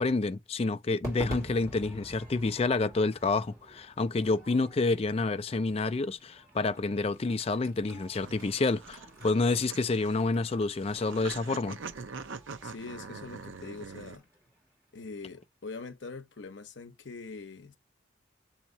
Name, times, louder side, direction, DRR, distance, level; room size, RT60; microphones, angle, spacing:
voice 1, 0.0-11.8, left 3 dB, 30° left, 0.3 m, -28 dB
Crowd / Fireworks, 1.0-15.4, right 1 dB, 15° right, 3.2 m, -48 dB
sound 1, 7.9-14.2, right 5 dB, 70° right, 0.6 m, -44 dB
voice 2, 12.6-14.3 14.9-17.8, left 4 dB, 60° left, 0.7 m, -43 dB
7.0 x 2.8 x 2.7 m
head